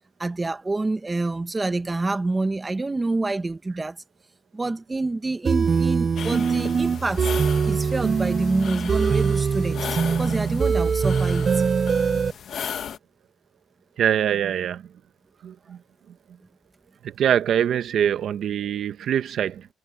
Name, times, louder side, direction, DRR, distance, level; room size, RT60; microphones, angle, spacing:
voice 1, 0.2-4.0 4.5-7.3 7.7-11.6, right 2 dB, 15° right, 1.0 m, -27 dB
sound 1, 5.4-12.3, right 6 dB, 35° right, 0.3 m, -22 dB
sound 2, 6.2-13.0, left 8 dB, 55° left, 1.3 m, -36 dB
voice 2, 14.0-14.8 15.4-15.8 17.0-19.7, right 9 dB, 60° right, 1.3 m, -24 dB
cardioid pair, 120°, 0 cm